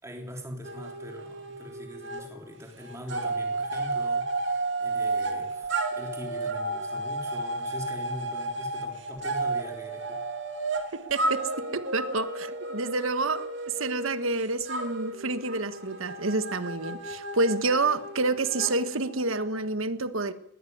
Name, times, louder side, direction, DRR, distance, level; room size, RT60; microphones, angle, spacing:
voice 1, 0.0-10.2, equal, 15° right, 2 dB, 3.4 m, -42 dB
sound 1, 0.6-2.3 2.5-19.6, right 2 dB, 60° right, 2.7 m, -33 dB
voice 2, 10.9-13.5 13.8-20.3, right 3 dB, 80° right, 11 dB, 1.5 m, -28 dB
22.0 x 16.5 x 9.5 m, 0.85 s
head